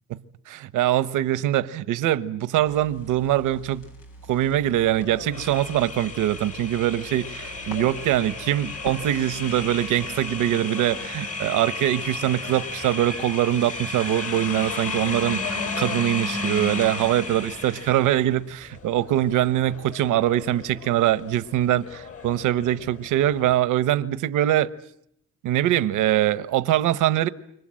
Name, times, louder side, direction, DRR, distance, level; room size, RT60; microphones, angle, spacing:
voice 1, 0.5-3.9 4.3-24.7 25.4-27.3, right 13 dB, 85° right, 1.1 m, -23 dB
sound 1, 2.6-10.5, equal, 90° left, 7.3 m, -44 dB
sound 2, 4.8-18.4 18.7-23.6, left 3 dB, 50° left, 5.8 m, -34 dB
29.5 x 26.0 x 7.7 m
cardioid pair, 90°, 30 cm